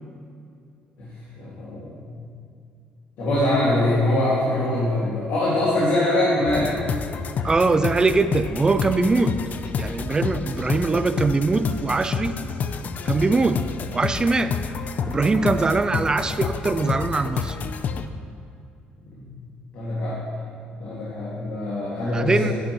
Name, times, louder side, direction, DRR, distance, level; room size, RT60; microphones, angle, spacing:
voice 1, 1.0-2.2 3.2-6.7 19.2-19.3 19.7-20.2 20.8-22.5, left 1 dB, 70° left, -7 dB, 1.9 m, -23 dB
sound 1, 6.5-18.1, left 5 dB, 50° left, 0.4 m, -29 dB
voice 2, 7.4-9.3 9.8-12.4 13.1-13.7 13.9-14.6 15.1-17.6 22.1-22.5, right 3 dB, 20° right, 11 dB, 0.4 m, -22 dB
9.9 x 9.2 x 3.0 m, 2.5 s
cardioid pair, 90°, 3 cm